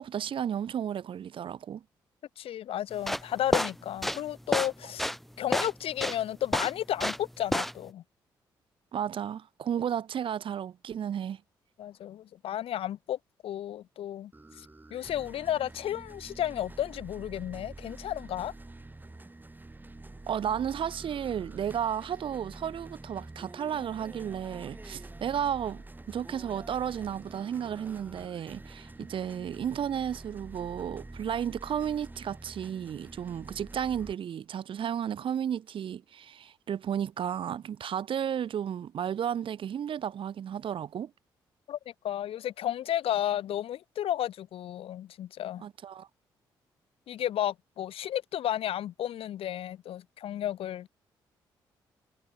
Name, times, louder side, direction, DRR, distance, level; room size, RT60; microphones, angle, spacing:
voice 1, 0.0-1.8 8.9-11.4 20.3-41.1 45.6-46.1, right 9 dB, 60° right, 1.1 m, -33 dB
voice 2, 2.4-5.0 5.4-8.0 11.8-14.3 14.6-14.7 14.9-18.5 41.7-41.8 42.0-45.6 47.1-50.9, left 11 dB, 70° left, 1.0 m, -33 dB
sound 1, 2.9-7.3 7.5-7.9, equal, ahead, 0.8 m, -29 dB
sound 2, 14.3-34.1, right 2 dB, 20° right, 1.4 m, -47 dB
hypercardioid pair, 50°, 10 cm